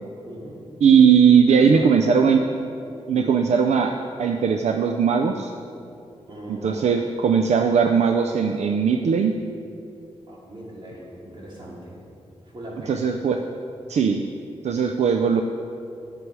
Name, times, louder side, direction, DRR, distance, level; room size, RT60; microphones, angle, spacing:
voice 1, 0.2-0.6 1.0-1.1 1.4-1.9 3.1-3.4 6.3-6.9 10.3-12.0 12.5-13.0, right 1 dB, 45° right, -5 dB, 2.7 m, -39 dB
voice 2, 0.8-2.4 3.1-5.5 6.5-9.3 12.9-13.4 13.9-14.2 14.6-15.4, right 6 dB, 75° right, 5 dB, 0.5 m, -19 dB
11.0 x 7.7 x 4.7 m, 2.6 s
wide cardioid pair, 130°, 11 cm